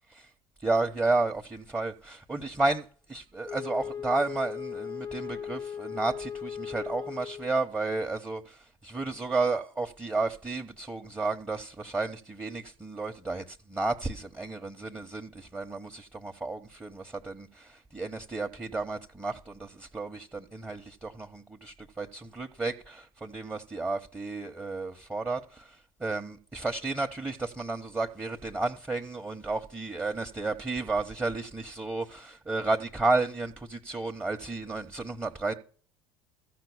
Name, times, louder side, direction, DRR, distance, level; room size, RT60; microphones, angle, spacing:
voice 1, 0.6-35.5, right 3 dB, 15° right, 1.0 m, -32 dB
Wind instrument woodwind instrument, 3.4-7.7, left 7 dB, 30° left, 0.6 m, -38 dB
14.5 x 5.9 x 7.1 m
figure-of-eight pair, 65°, 12 cm